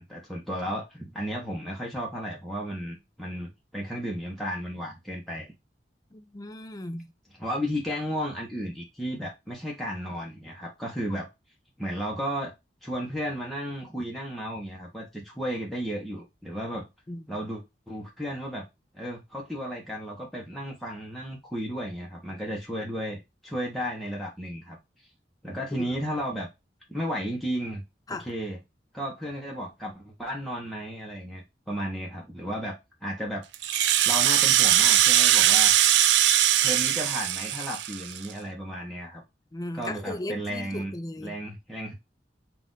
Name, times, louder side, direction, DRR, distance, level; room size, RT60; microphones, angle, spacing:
voice 1, 0.0-5.5 7.4-11.3 11.8-12.5 12.8-16.9 17.3-18.6 18.9-24.8 25.4-26.5 26.9-27.8 28.1-28.6 28.9-33.4 34.0-35.7 36.6-39.2 39.7-40.9 41.2-41.9, equal, ahead, 0.9 m, -34 dB
voice 2, 6.1-7.1 17.1-17.4 25.7-25.9 28.1-28.3 39.5-41.4, left 1 dB, 20° left, 0.4 m, -37 dB
Rattle (instrument), 33.5-38.3, right 12 dB, 80° right, 0.4 m, -21 dB
4.1 x 2.5 x 3.9 m
head